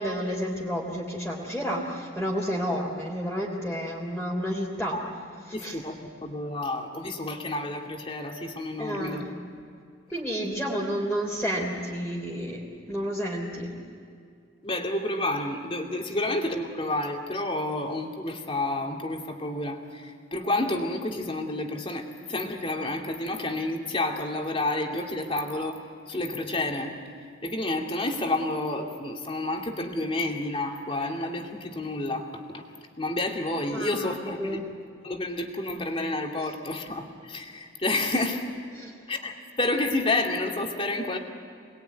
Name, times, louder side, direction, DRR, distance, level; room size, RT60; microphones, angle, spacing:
voice 1, 0.0-5.0 5.6-5.8 8.8-9.3 10.1-13.8 33.7-34.6 36.4-36.5 38.7-38.9, equal, 5° left, -5 dB, 3.4 m, -31 dB
voice 2, 5.5-9.2 14.6-25.8 26.1-26.9 27.4-32.6 33.0-34.6 35.0-38.5 39.1-41.2, left 2 dB, 30° left, 2 dB, 2.6 m, -30 dB
27.5 x 21.0 x 9.5 m, 2.3 s
head